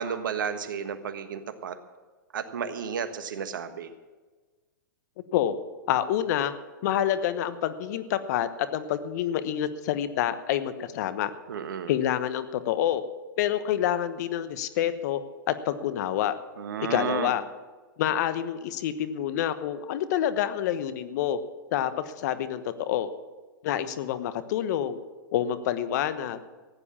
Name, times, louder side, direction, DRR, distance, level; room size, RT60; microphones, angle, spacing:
voice 1, 0.0-1.8 2.3-3.9 11.5-11.9 16.6-17.3, right 7 dB, 75° right, 10 dB, 1.4 m, -32 dB
voice 2, 5.9-6.5 6.8-11.3 11.9-13.0 13.4-15.2 15.5-16.3 16.8-17.4 18.0-21.4 21.7-23.1 23.6-25.0 25.3-26.6, left 11 dB, 55° left, 13 dB, 1.1 m, -27 dB
15.0 x 9.7 x 7.2 m, 1.3 s
hypercardioid pair, 115°, 11 cm